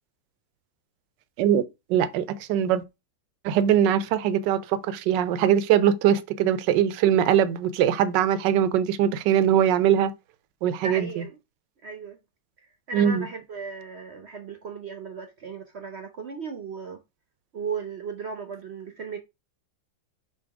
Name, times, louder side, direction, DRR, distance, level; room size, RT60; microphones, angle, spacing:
voice 1, 1.9-2.8 3.4-10.1 10.6-11.1 12.9-13.3, right 9 dB, 80° right, 1.2 m, -21 dB
voice 2, 10.8-11.4 11.8-12.2 12.6-17.0 17.5-19.2, right 5 dB, 55° right, 0.7 m, -36 dB
6.9 x 2.8 x 4.7 m
omnidirectional pair, 1.9 m